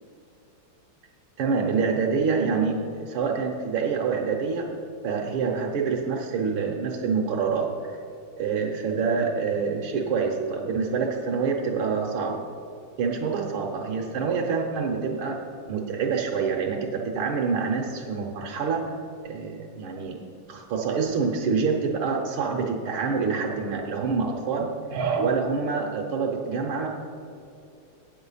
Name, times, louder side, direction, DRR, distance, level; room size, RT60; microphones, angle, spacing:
voice 1, 1.4-4.7 5.0-7.7 8.4-12.4 13.0-18.8 19.2-20.2 20.5-26.9, right 5 dB, 70° right, -1 dB, 1.7 m, -26 dB
8.5 x 8.1 x 5.5 m, 2.6 s
omnidirectional pair, 2.4 m